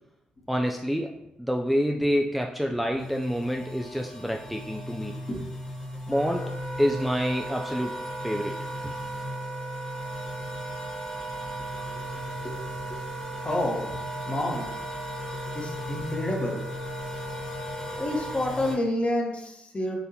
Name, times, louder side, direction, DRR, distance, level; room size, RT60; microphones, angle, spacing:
voice 1, 0.5-5.2 6.1-6.5 6.8-8.0 8.2-8.6, equal, ahead, 2 dB, 0.3 m, -27 dB
sound 1, 3.0-18.8, left 1 dB, 15° left, 1.2 m, -38 dB
Wind instrument woodwind instrument, 6.1-18.4, right 2 dB, 85° left, 1.0 m, -38 dB
voice 2, 13.4-14.0 14.3-14.7 15.5-16.6 18.0-20.0, left 1 dB, 35° left, 0 dB, 0.9 m, -29 dB
4.0 x 2.6 x 2.7 m, 0.84 s
hypercardioid pair, 40°, 4 cm